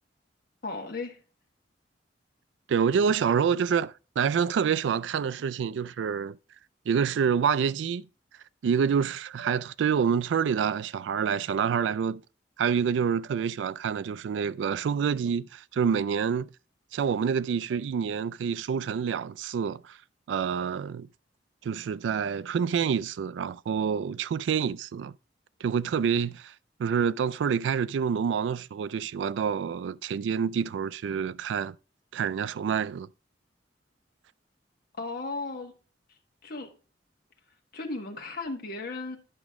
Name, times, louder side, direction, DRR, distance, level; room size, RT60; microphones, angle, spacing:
voice 1, 0.6-1.2 35.0-35.7 36.4-36.7 37.7-39.2, left 3 dB, 55° left, 1.4 m, -35 dB
voice 2, 2.7-6.4 6.9-8.0 8.6-12.2 12.6-16.5 16.9-20.0 20.3-21.1 21.6-25.1 25.6-26.5 26.8-31.8 32.1-33.1, right 7 dB, 80° right, 0.3 m, -27 dB
9.9 x 6.2 x 3.5 m
head